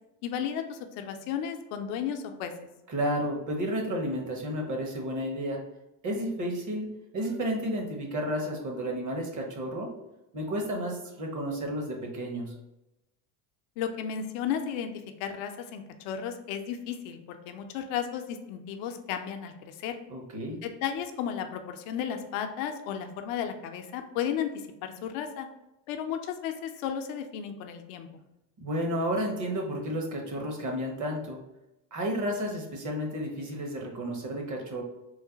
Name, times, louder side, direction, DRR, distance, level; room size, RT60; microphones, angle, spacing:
voice 1, 0.2-2.5 13.8-14.9 15.2-19.9 20.6-25.5 25.9-28.1, left 8 dB, 70° left, 6 dB, 0.6 m, -34 dB
voice 2, 2.9-5.6 6.0-6.9 7.1-9.9 10.3-12.5 20.1-20.6 28.6-31.4 31.9-34.8, equal, 40° right, 1 dB, 0.9 m, -32 dB
3.2 x 2.1 x 3.8 m, 0.93 s
supercardioid pair, 100°, 48 cm